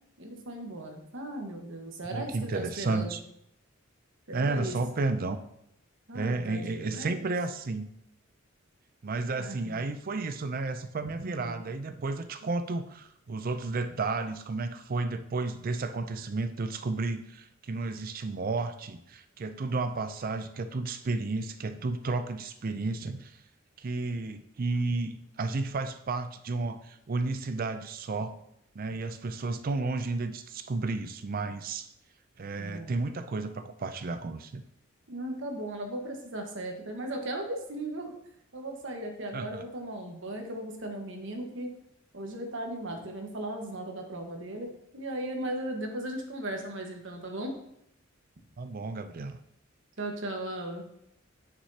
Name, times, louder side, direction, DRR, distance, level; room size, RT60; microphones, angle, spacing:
voice 1, 0.2-3.2 4.3-4.8 6.1-7.3 9.4-9.8 11.0-11.6 32.6-32.9 35.1-38.1 38.5-41.7 42.1-47.5 50.0-50.8, right 1 dB, 65° right, 3 dB, 1.4 m, -37 dB
voice 2, 2.1-3.2 4.3-5.4 6.1-7.9 9.0-23.4 23.8-28.4 28.7-31.9 32.4-34.6 39.3-39.6 48.6-49.4, right 3 dB, 45° right, 10 dB, 0.5 m, -32 dB
9.7 x 6.0 x 2.8 m, 0.76 s
head